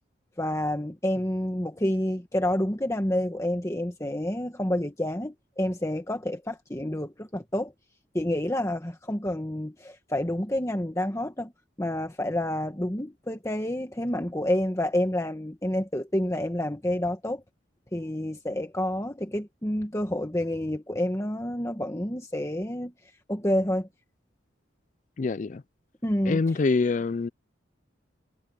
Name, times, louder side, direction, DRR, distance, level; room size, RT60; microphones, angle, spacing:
voice 1, 0.4-7.7 8.1-11.5 11.8-17.4 17.9-22.9 23.3-23.9 26.0-26.4, left 1 dB, 15° left, 1.3 m, -28 dB
voice 2, 25.2-25.6 26.3-27.3, left 4 dB, 40° left, 0.4 m, -25 dB
head